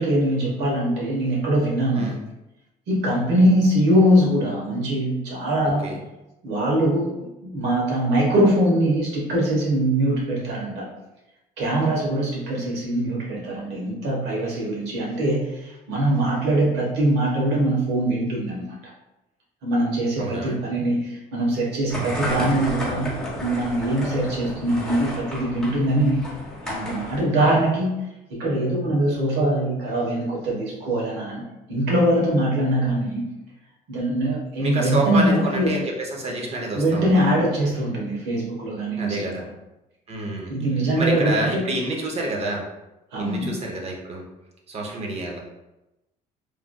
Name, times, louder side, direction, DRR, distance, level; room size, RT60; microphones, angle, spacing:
voice 1, 0.0-2.1 2.9-5.9 6.4-7.1 7.4-10.9 11.6-18.8 19.6-26.3 26.6-27.9 28.3-31.4 31.7-33.2 33.9-35.7 36.7-39.3 40.5-41.6 43.1-43.5, right 1 dB, 85° right, -3 dB, 1.1 m, -22 dB
voice 2, 5.6-6.0 20.2-20.6 34.6-37.1 39.0-39.5 40.1-40.5 41.0-42.6 43.2-44.2 44.7-45.4, right 1 dB, 35° right, -1 dB, 0.7 m, -28 dB
sound 1, 21.9-27.2, equal, 5° left, 0.9 m, -32 dB
3.2 x 2.5 x 2.2 m, 0.97 s
cardioid pair, 110°, 17 cm